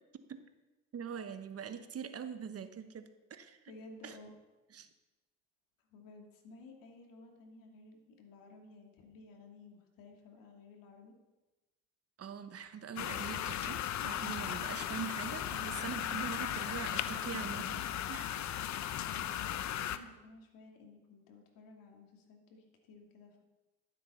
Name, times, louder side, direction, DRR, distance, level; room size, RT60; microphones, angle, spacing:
voice 1, 0.9-3.6 4.0-4.2 4.7-4.9 12.2-18.6, right 7 dB, 40° right, 10 dB, 1.1 m, -43 dB
voice 2, 3.7-4.3 5.9-11.1 19.0-23.4, left 3 dB, 70° left, 2 dB, 2.7 m, -55 dB
sound 1, 13.0-20.0, left 11 dB, 50° left, 0.8 m, -37 dB
12.5 x 7.7 x 5.7 m, 1.1 s
hypercardioid pair, 65°, 36 cm